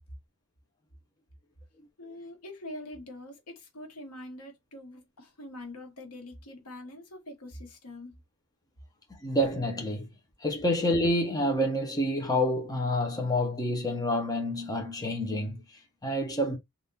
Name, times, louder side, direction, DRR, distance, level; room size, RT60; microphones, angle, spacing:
voice 1, 2.0-8.2, left 1 dB, 85° left, 1.2 m, -44 dB
voice 2, 9.1-10.1 10.4-16.6, left 1 dB, 15° left, 0.8 m, -28 dB
3.5 x 2.5 x 2.7 m
head